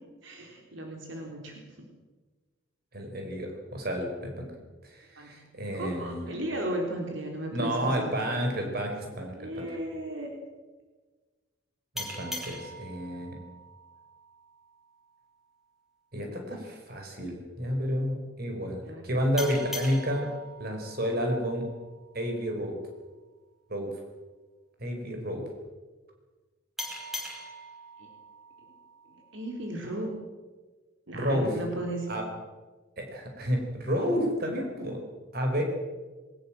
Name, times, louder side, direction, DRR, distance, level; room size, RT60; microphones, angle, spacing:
voice 1, 0.2-1.9 5.2-5.4 5.8-8.5 9.4-10.3 18.9-19.0 28.0-28.1 29.3-30.1 31.1-32.1, right 1 dB, 75° right, 1 dB, 3.8 m, -35 dB
voice 2, 2.9-4.5 4.9-6.3 7.5-9.7 12.0-13.4 16.1-20.3 20.6-21.6 22.1-22.8 23.7-23.9 24.8-25.4 31.1-31.6 32.1-32.3 33.0-35.0 35.3-35.6, equal, 50° right, 3 dB, 5.3 m, -30 dB
sound 1, 12.0-15.2 19.4-22.6 26.8-29.7, equal, ahead, 5.5 m, -42 dB
21.5 x 20.0 x 7.7 m, 1.3 s
head